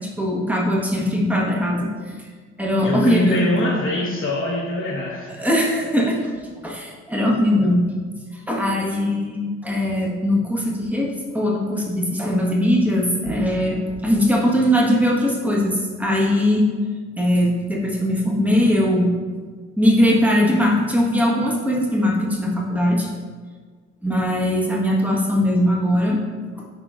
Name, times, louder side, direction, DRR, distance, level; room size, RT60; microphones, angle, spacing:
voice 1, 0.2-2.1 2.6-3.4 5.3-6.2 6.6-7.8 8.5-16.7 17.2-19.1 19.8-23.1 24.0-26.2, equal, 5° right, -3 dB, 1.4 m, -20 dB
voice 2, 2.8-5.3, left 1 dB, 45° left, -6 dB, 1.2 m, -23 dB
10.5 x 3.9 x 2.5 m, 1.5 s
cardioid pair, 90°, 30 cm